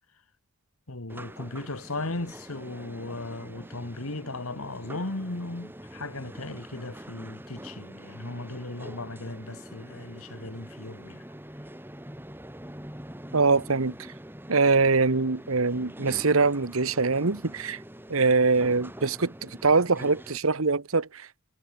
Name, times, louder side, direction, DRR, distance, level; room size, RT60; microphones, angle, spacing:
voice 1, 0.9-11.3, left 2 dB, 85° left, 2.2 m, -37 dB
sound 1, 1.1-20.4, right 1 dB, 10° right, 3.0 m, -44 dB
voice 2, 13.3-13.9 14.5-17.8 18.1-21.4, right 4 dB, 75° right, 1.3 m, -23 dB
head